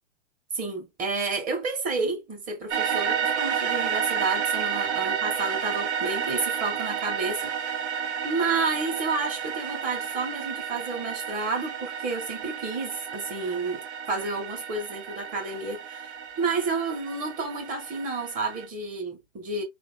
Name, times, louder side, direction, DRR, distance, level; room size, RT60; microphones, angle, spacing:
voice 1, 0.5-7.5 7.9-19.6, right 3 dB, 25° right, 1.9 m, -30 dB
sound 1, 2.7-18.6, right 7 dB, 80° right, 1.3 m, -31 dB
3.5 x 3.5 x 3.6 m
hypercardioid pair, 130°, 35 cm